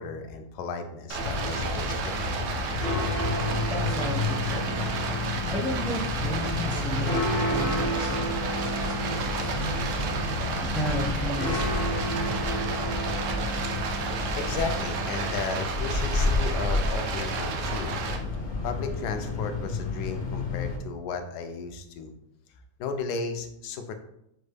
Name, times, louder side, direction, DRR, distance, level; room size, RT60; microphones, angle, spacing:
voice 1, 0.0-2.4 14.3-17.9 18.6-22.1 22.8-23.9, left 4 dB, 80° left, 7 dB, 1.1 m, -34 dB
Stream, 1.1-18.2, right 5 dB, 65° right, 0.8 m, -32 dB
sound 1, 1.2-20.8, left 2 dB, 50° left, 0.6 m, -30 dB
voice 2, 3.7-10.0 10.6-12.2, equal, ahead, -2 dB, 0.5 m, -35 dB
6.2 x 2.2 x 3.3 m, 0.78 s
omnidirectional pair, 1.7 m